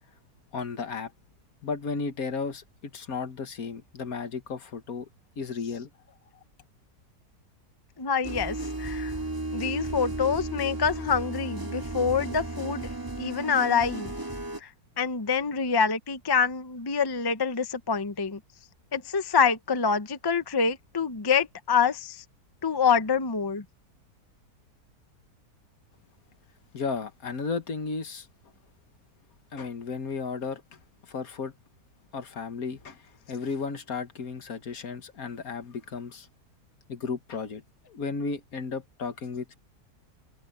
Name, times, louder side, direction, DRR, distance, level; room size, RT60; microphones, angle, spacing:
voice 1, 0.5-1.1 1.6-5.1 5.4-5.9 26.7-28.3 29.5-30.8 31.1-31.5 32.1-36.3 36.9-37.6 37.9-39.5, left 5 dB, 65° left, 1.8 m, -34 dB
voice 2, 8.0-9.1 9.5-14.1 14.6-14.7 15.0-18.4 18.9-22.2 22.6-23.6, left 6 dB, 25° left, 0.5 m, -26 dB
sound 1, 8.2-14.6, right 2 dB, 15° right, 2.2 m, -34 dB
omnidirectional pair, 1.7 m